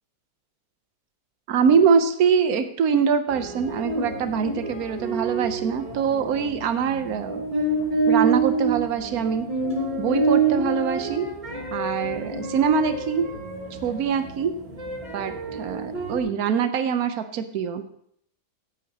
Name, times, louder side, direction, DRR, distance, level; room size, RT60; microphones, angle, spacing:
voice 1, 1.5-7.5 8.1-9.5 10.0-11.3 11.7-13.3 13.8-14.5 15.1-18.0, right 6 dB, 75° right, 9 dB, 1.3 m, -23 dB
sound 1, 3.3-16.2, right 3 dB, 30° right, 3.1 m, -27 dB
14.5 x 8.5 x 2.9 m, 0.66 s
omnidirectional pair, 1.6 m